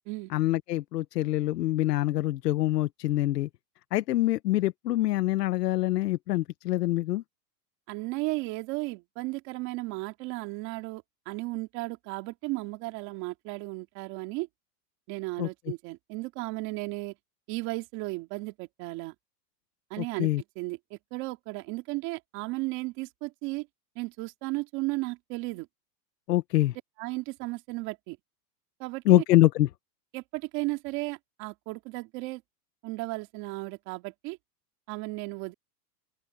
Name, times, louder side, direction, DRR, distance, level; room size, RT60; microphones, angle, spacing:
voice 1, 0.3-3.5 3.9-7.2 15.4-15.5 20.0-20.4 26.3-26.8 29.0-29.7, left 16 dB, 85° left, 1.1 m, -25 dB
voice 2, 7.9-14.5 15.1-17.1 17.5-19.1 19.9-20.3 20.6-23.7 24.0-25.7 27.0-28.2 28.8-29.2 30.1-32.4 32.8-34.4 34.9-35.5, right 23 dB, 35° right, 2.6 m, -35 dB
open air
supercardioid pair, 160°, 47 cm